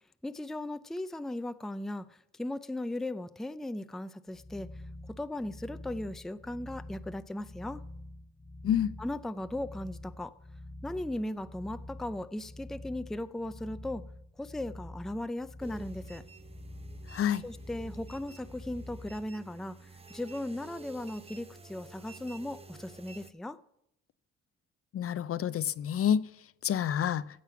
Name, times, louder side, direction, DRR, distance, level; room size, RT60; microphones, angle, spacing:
voice 1, 0.2-4.7 5.2-7.8 9.0-10.3 10.8-14.0 14.4-16.2 17.4-23.6, left 1 dB, ahead, 12 dB, 0.4 m, -37 dB
sound 1, 4.3-19.2, left 1 dB, 25° left, 1.2 m, -47 dB
sound 2, 15.6-23.3, right 4 dB, 20° right, 0.9 m, -51 dB
voice 2, 17.1-17.4 24.9-26.3 26.6-27.2, left 9 dB, 50° left, 16 dB, 0.5 m, -28 dB
15.5 x 7.5 x 5.8 m, 0.76 s
cardioid pair, 90°, 30 cm